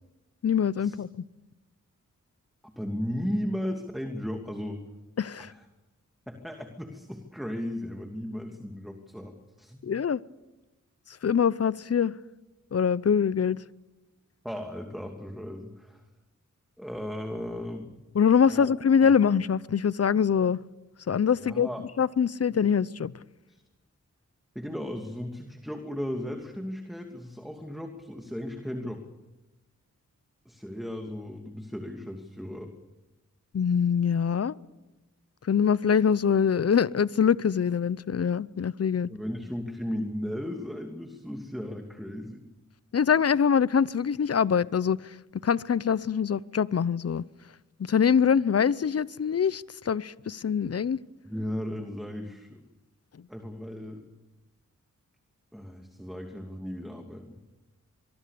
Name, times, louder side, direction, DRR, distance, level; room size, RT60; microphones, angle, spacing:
voice 1, 0.4-1.1 5.2-5.5 9.8-10.2 11.2-12.1 12.7-13.6 18.1-20.6 21.1-21.7 22.0-23.1 33.5-34.5 35.5-39.1 42.9-45.1 45.4-47.2 47.8-51.0, left 7 dB, 50° left, 0.7 m, -24 dB
voice 2, 2.6-4.8 5.4-5.6 6.3-9.8 14.4-16.0 16.8-18.0 18.5-18.7 21.3-21.9 23.5-23.6 24.5-29.0 30.5-32.7 39.1-42.4 51.3-52.6 53.3-54.0 55.5-57.4, equal, ahead, 2.7 m, -36 dB
24.5 x 22.5 x 6.9 m
cardioid pair, 55°, 31 cm